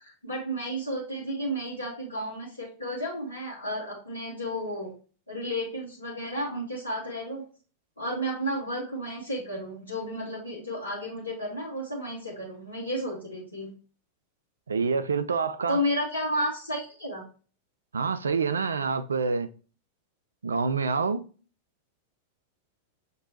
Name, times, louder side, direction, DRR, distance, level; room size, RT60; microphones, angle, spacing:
voice 1, 0.0-4.9 5.3-7.4 8.0-13.7 15.7-17.2, equal, 80° left, 1.0 m, -32 dB
voice 2, 14.7-15.8 17.9-19.5 20.4-21.2, right 5 dB, 70° right, 0.3 m, -27 dB
5.9 x 2.9 x 2.7 m
figure-of-eight pair, 90°, 0 cm